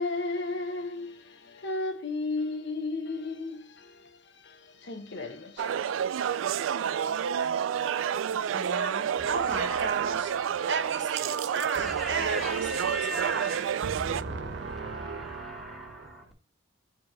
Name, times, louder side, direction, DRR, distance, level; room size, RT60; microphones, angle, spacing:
voice 1, 0.0-5.7, left 3 dB, 65° left, 0.9 m, -34 dB
sound 1, 5.6-14.2, right 8 dB, 85° right, 0.3 m, -29 dB
voice 2, 8.5-10.3 10.7-13.6 13.8-16.2, right 5 dB, 65° right, 0.8 m, -34 dB
voice 3, 9.2-10.8 11.7-16.3, right 1 dB, ahead, 1.1 m, -39 dB
7.4 x 2.9 x 5.0 m
head